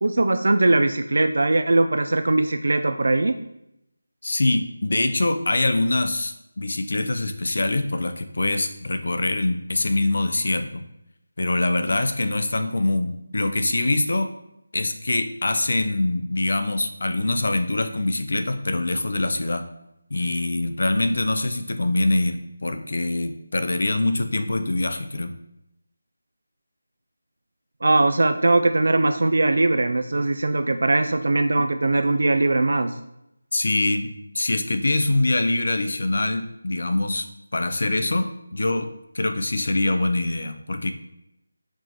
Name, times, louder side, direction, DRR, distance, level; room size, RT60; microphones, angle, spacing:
voice 1, 0.0-3.4 27.8-32.9, right 2 dB, 65° right, 7 dB, 0.3 m, -20 dB
voice 2, 4.2-10.8 11.4-14.3 14.7-19.6 20.1-25.3 33.5-34.1 34.3-37.3 37.5-40.9, left 2 dB, 55° left, 8 dB, 0.5 m, -24 dB
4.6 x 2.9 x 3.9 m, 0.85 s
figure-of-eight pair, 175°, 0 cm